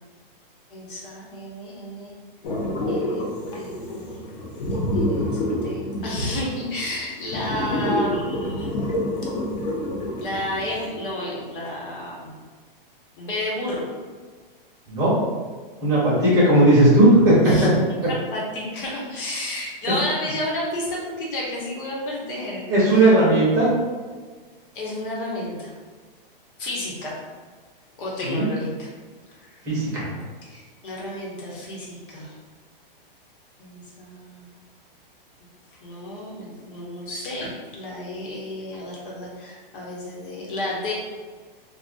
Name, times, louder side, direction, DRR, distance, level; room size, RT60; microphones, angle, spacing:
voice 1, 0.7-2.1 2.9-4.2 4.9-8.8 10.2-12.3 13.2-13.8 17.4-17.7 18.0-22.6 24.7-25.7 26.6-27.2 28.0-28.9 29.4-29.6 30.4-32.3 33.6-34.5 35.8-40.9, left 1 dB, 65° left, -4 dB, 1.2 m, -31 dB
sound 1, 2.4-10.9, left 1 dB, 45° left, 0.7 m, -28 dB
voice 2, 15.8-17.7 22.7-23.7 28.2-28.5 29.6-30.1, right 1 dB, 10° right, -7 dB, 0.6 m, -16 dB
2.6 x 2.4 x 3.7 m, 1.5 s
hypercardioid pair, 175°, 29 cm